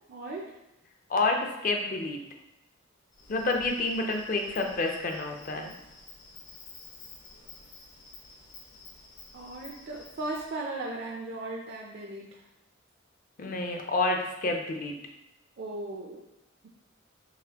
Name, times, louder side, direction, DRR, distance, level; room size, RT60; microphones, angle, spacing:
voice 1, 0.1-0.5 9.3-12.4 15.6-16.3, right 2 dB, 55° right, 0 dB, 0.4 m, -37 dB
voice 2, 1.1-2.2 3.3-5.7 13.4-14.9, left 2 dB, 45° left, 3 dB, 0.5 m, -29 dB
Insect, 3.1-10.5, left 3 dB, 75° left, 1.2 m, -51 dB
3.9 x 3.4 x 2.8 m, 0.91 s
head